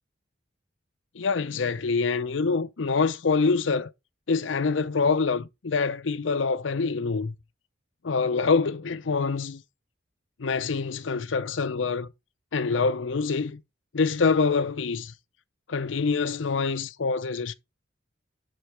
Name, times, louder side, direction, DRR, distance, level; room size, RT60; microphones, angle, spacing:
voice 1, 1.2-3.9 4.3-7.3 8.0-9.6 10.4-12.1 12.5-13.6 13.9-15.1 15.7-17.5, left 4 dB, 70° left, 0.6 m, -25 dB
11.5 x 4.0 x 4.6 m
head